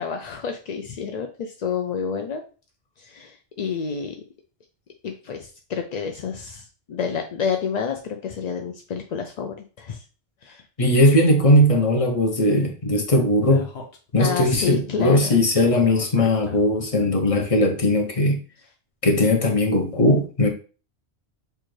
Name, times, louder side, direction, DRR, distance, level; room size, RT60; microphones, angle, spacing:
voice 1, 0.0-2.4 3.0-4.2 5.0-10.0 10.4-10.6 14.2-15.4, left 6 dB, 55° left, 4 dB, 0.5 m, -29 dB
voice 2, 10.8-13.7 14.1-18.4 19.0-20.5, left 1 dB, 35° left, 3 dB, 0.8 m, -19 dB
Speech, 13.5-16.9, left 4 dB, 75° left, 1.2 m, -38 dB
6.6 x 2.5 x 3.1 m, 0.36 s
omnidirectional pair, 1.2 m